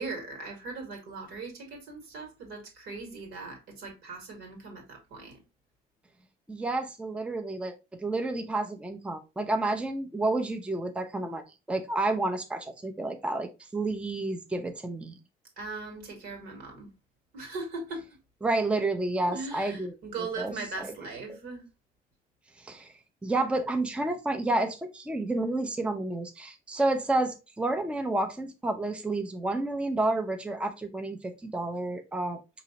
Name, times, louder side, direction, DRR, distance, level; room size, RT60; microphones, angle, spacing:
voice 1, 0.0-5.4 15.6-16.9 17.3-18.0 19.2-21.6, right 3 dB, 75° right, 1.9 m, -39 dB
voice 2, 6.5-15.1 18.4-19.9 20.4-20.9 22.6-22.9 23.2-32.4, right 2 dB, 5° right, 0.5 m, -30 dB
4.6 x 3.0 x 2.8 m
cardioid pair, 110°, 17 cm